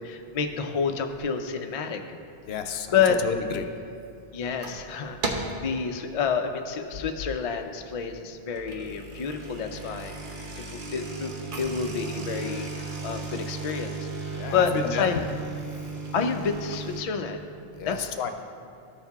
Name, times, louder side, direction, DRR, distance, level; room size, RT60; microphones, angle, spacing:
voice 1, 0.0-2.0 2.9-3.2 4.3-10.1 10.6-11.3 11.6-15.2 16.1-17.4 17.8-18.1, left 6 dB, 45° left, 5 dB, 0.5 m, -29 dB
voice 2, 2.5-3.6 14.3-15.1 17.8-18.3, left 6 dB, 80° left, 7 dB, 0.8 m, -31 dB
sound 1, 4.4-4.9 5.2-5.7 6.1-6.4 7.0-7.1 7.3-7.4 8.4-17.0, right 4 dB, 55° right, 1.0 m, -35 dB
13.5 x 4.6 x 3.5 m, 2.6 s
omnidirectional pair, 1.0 m